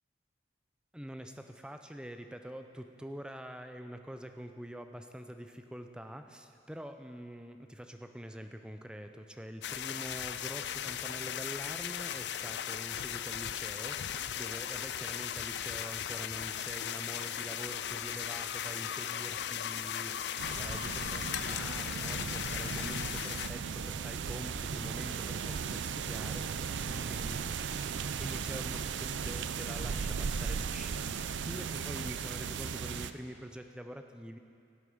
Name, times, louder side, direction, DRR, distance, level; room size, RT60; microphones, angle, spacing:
voice 1, 0.9-26.8 27.1-27.4 28.2-34.4, equal, 5° right, 6 dB, 0.5 m, -45 dB
sound 1, 9.6-23.5, left 10 dB, 70° left, 0.4 m, -37 dB
Alarm, 12.8-27.9, left 3 dB, 30° left, 1.1 m, -60 dB
sound 2, 20.4-33.1, right 6 dB, 90° right, 0.4 m, -36 dB
17.0 x 8.0 x 5.1 m, 2.4 s
head